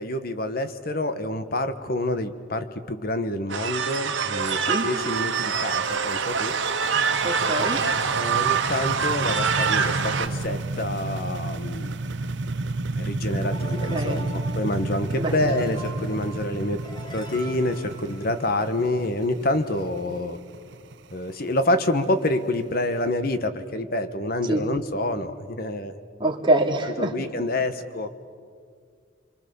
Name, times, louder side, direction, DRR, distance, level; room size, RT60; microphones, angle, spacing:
voice 1, 0.0-6.5 8.1-11.9 12.9-16.8 17.1-20.4 21.1-25.9 26.8-28.1, left 1 dB, 50° left, 9 dB, 1.4 m, -27 dB
sound 1, 3.5-10.3, right 6 dB, 85° right, 1.6 m, -25 dB
sound 2, 4.2-23.0, right 2 dB, 65° right, 0.7 m, -32 dB
voice 2, 7.2-7.8 13.9-14.3 15.1-15.3 24.5-24.6 26.2-27.1, right 1 dB, 25° right, -1 dB, 2.6 m, -24 dB
sound 3, 13.4-18.9, right 2 dB, 25° left, 2.4 m, -42 dB
26.5 x 24.5 x 7.0 m, 2.1 s
head